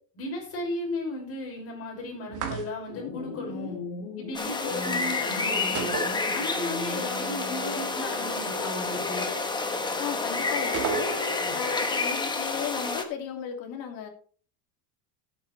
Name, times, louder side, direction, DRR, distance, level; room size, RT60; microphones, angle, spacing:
voice 1, 0.1-3.8 4.2-6.0 6.3-9.3, left 1 dB, 35° left, -2 dB, 6.0 m, -35 dB
sound 1, 2.3-3.1 5.8-6.8 7.1-7.2 10.7-11.5, right 7 dB, 45° right, 2.1 m, -33 dB
sound 2, 2.9-11.9, left 5 dB, 80° left, 2.8 m, -40 dB
sound 3, 4.3-13.0, left 3 dB, 10° left, 1.1 m, -29 dB
voice 2, 10.0-11.1 11.5-14.1, left 8 dB, 55° left, 3 dB, 2.7 m, -35 dB
15.0 x 8.3 x 3.3 m, 0.43 s
cardioid pair, 160°, 41 cm